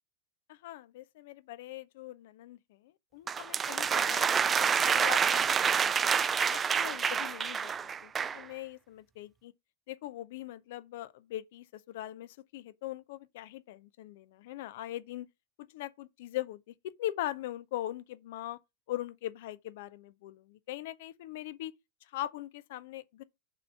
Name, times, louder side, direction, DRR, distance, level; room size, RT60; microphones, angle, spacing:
voice 1, 0.5-6.2 6.5-9.5 9.9-15.3 15.7-18.6 18.9-21.7 22.1-23.2, left 14 dB, 50° left, 0.6 m, -41 dB
sound 1, 3.3-8.4, right 6 dB, 20° right, 0.4 m, -28 dB
5.7 x 3.7 x 5.4 m
figure-of-eight pair, 90°, 0 cm